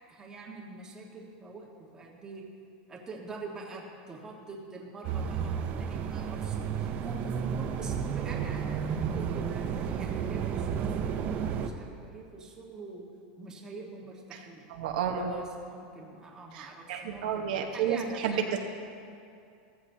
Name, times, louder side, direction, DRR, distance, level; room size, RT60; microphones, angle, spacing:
voice 1, 0.1-2.5 2.9-13.1 13.4-14.7 15.2-18.6, right 3 dB, 15° right, -2 dB, 1.4 m, -45 dB
sound 1, 5.0-11.7, right 7 dB, 35° right, 0.6 m, -32 dB
voice 2, 14.7-15.3 16.5-18.6, right 8 dB, 70° right, 2 dB, 1.1 m, -31 dB
14.5 x 14.5 x 2.8 m, 2.5 s
supercardioid pair, 160°, 5 cm